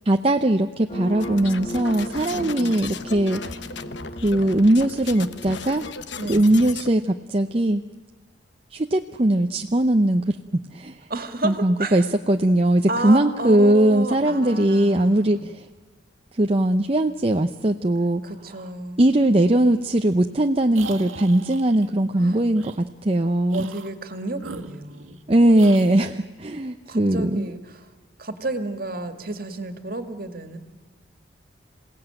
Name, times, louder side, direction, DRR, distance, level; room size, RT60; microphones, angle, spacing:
voice 1, 0.0-3.6 4.2-5.9 6.3-7.8 8.7-10.4 10.7-11.1 11.4-15.7 16.3-18.2 19.0-23.7 25.3-27.5, right 1 dB, 30° right, 6 dB, 0.7 m, -20 dB
sound 1, 0.9-5.9, equal, 30° left, 2.3 m, -36 dB
sound 2, 1.2-6.9, left 5 dB, 65° left, 1.0 m, -36 dB
voice 2, 2.3-2.8 6.2-6.6 11.1-12.1 12.9-15.6 18.2-19.1 22.2-22.4 23.5-25.2 26.9-27.9 28.2-30.6, right 2 dB, 45° right, 7 dB, 2.1 m, -32 dB
sound 3, 20.7-21.9 22.5-22.8 23.5-24.0 24.4-25.2 25.6-26.1, right 4 dB, 90° right, 1.7 m, -40 dB
27.5 x 17.5 x 9.0 m, 1.4 s
head